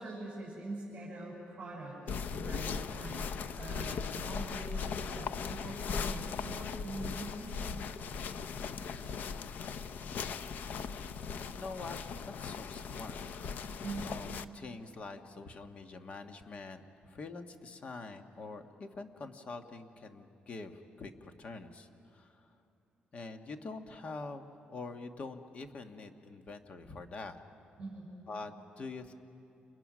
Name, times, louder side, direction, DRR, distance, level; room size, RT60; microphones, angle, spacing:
voice 1, 0.0-7.6 13.8-14.1 27.8-28.1, right 2 dB, 25° right, -7 dB, 6.5 m, -43 dB
sound 1, 2.1-14.4, left 5 dB, 60° left, 0.7 m, -38 dB
voice 2, 11.6-12.0 12.2-13.4 14.0-22.5 23.1-27.4 28.3-29.1, left 3 dB, 40° left, 6 dB, 1.4 m, -45 dB
29.0 x 29.0 x 6.2 m, 2.7 s
cardioid pair, 165°, 3 cm